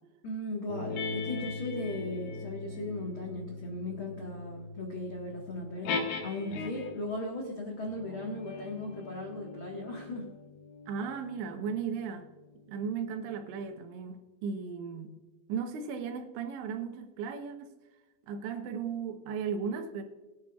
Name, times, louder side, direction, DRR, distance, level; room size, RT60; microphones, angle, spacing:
voice 1, 0.2-10.3, left 2 dB, 80° left, -1 dB, 1.1 m, -37 dB
sound 1, 0.7-7.1 7.8-12.8, left 3 dB, 65° left, 2.7 m, -40 dB
voice 2, 10.9-12.3 12.7-15.2 15.5-17.7 18.3-20.0, right 6 dB, 80° right, 5 dB, 3.3 m, -36 dB
21.5 x 10.5 x 2.4 m, 1.2 s
omnidirectional pair, 5.2 m